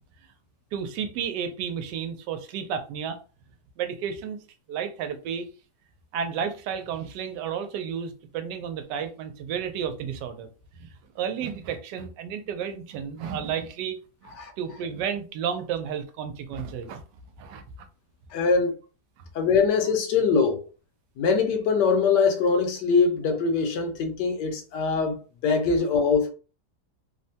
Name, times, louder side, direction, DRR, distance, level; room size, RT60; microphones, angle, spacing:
voice 1, 0.7-3.2 3.8-4.4 4.7-5.5 6.1-10.5 10.8-10.9 11.2-14.0 14.2-17.0 17.4-17.6, right 7 dB, 85° right, 1.2 m, -32 dB
voice 2, 18.3-18.7 19.3-20.6 21.2-26.3, left 5 dB, 85° left, 1.3 m, -23 dB
3.3 x 2.1 x 2.7 m
omnidirectional pair, 1.8 m